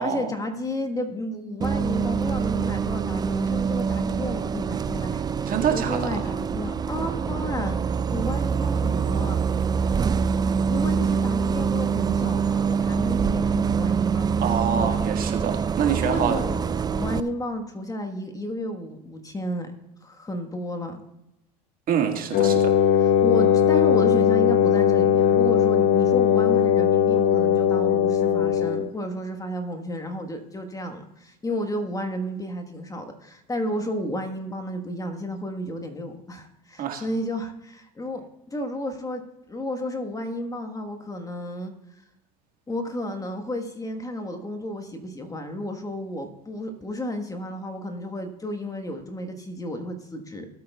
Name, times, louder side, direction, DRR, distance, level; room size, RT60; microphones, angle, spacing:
voice 1, 0.0-7.7 8.1-9.4 10.6-14.9 16.0-19.7 20.0-21.0 22.4-22.6 23.0-39.2 39.5-41.7 42.7-50.5, left 1 dB, 15° left, 5 dB, 1.3 m, -32 dB
Bus, 1.6-17.2, right 6 dB, 20° right, 0.4 m, -25 dB
voice 2, 5.5-6.3 14.4-16.4 21.9-22.6 36.8-37.0, right 8 dB, 45° right, 4 dB, 1.7 m, -26 dB
Wind instrument woodwind instrument, 22.3-28.9, left 9 dB, 50° left, 0.8 m, -19 dB
18.0 x 8.7 x 2.3 m, 0.89 s
hypercardioid pair, 80°, 21 cm